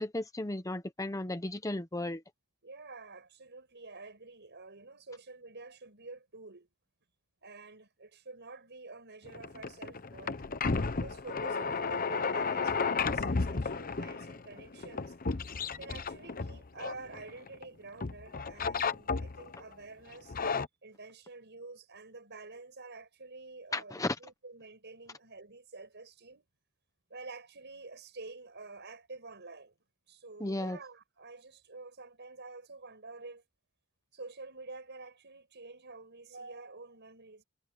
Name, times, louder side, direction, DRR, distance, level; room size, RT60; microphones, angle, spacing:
voice 1, 0.0-2.2 23.7-24.2 30.4-30.8, left 2 dB, 15° left, 0.8 m, -34 dB
voice 2, 2.6-6.7 7.4-10.4 10.9-15.1 15.8-20.3 20.8-26.5 27.1-29.8 30.1-33.4 34.1-37.4, right 3 dB, 55° right, 6.5 m, -48 dB
sound 1, 9.3-17.6 18.0-19.6 20.1-20.7, left 4 dB, 40° left, 0.9 m, -33 dB
head